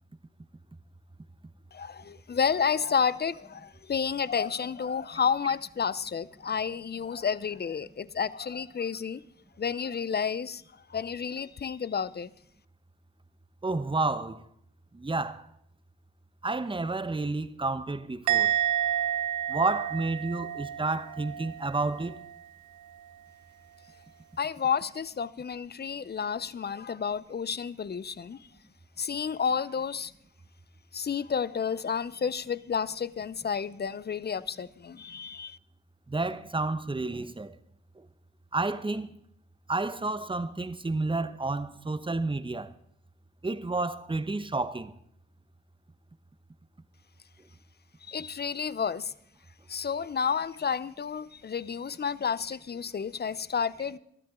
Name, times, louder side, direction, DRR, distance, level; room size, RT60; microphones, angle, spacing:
voice 1, 1.7-9.2 9.6-10.6 10.9-12.3 24.4-28.5 29.0-30.1 30.9-35.6 48.0-49.1 49.7-54.0, left 6 dB, 35° left, 0.7 m, -31 dB
voice 2, 13.6-14.4 14.9-15.5 16.4-18.5 19.5-22.2 36.1-37.5 38.5-39.1 39.7-42.7 43.4-44.9, right 3 dB, 15° right, 1.1 m, -30 dB
Musical instrument, 18.3-21.7 21.9-22.4, right 11 dB, 75° right, 0.5 m, -29 dB
20.0 x 12.5 x 3.8 m
hypercardioid pair, 40°, 30 cm